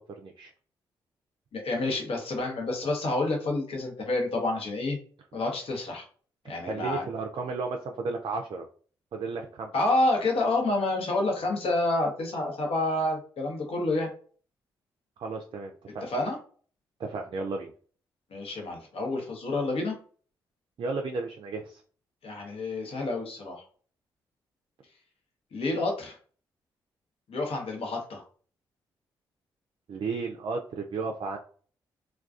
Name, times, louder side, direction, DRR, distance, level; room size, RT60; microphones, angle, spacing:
voice 1, 0.1-0.5 6.7-8.7 9.1-9.7 15.2-16.1 17.0-17.7 20.8-21.8 29.9-31.4, right 4 dB, 50° right, 3 dB, 0.4 m, -33 dB
voice 2, 1.5-5.0 5.3-6.0 6.4-7.1 9.7-14.1 16.0-16.4 18.3-20.0 22.2-23.6 25.5-26.2 27.3-28.2, left 2 dB, 60° left, 1 dB, 0.9 m, -28 dB
2.3 x 2.2 x 2.4 m, 0.43 s
hypercardioid pair, 40°, 11 cm